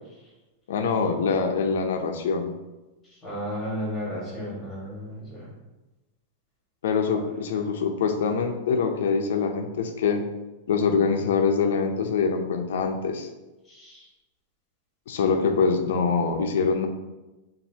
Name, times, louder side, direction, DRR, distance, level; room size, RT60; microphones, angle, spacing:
voice 1, 0.7-2.5 6.8-10.3 10.7-13.3 15.1-16.9, left 5 dB, 75° left, 5 dB, 0.6 m, -24 dB
voice 2, 3.1-5.5 7.1-7.2 13.6-14.1, equal, 10° left, -6 dB, 1.6 m, -34 dB
7.2 x 2.6 x 2.8 m, 1.1 s
supercardioid pair, 175°, 0 cm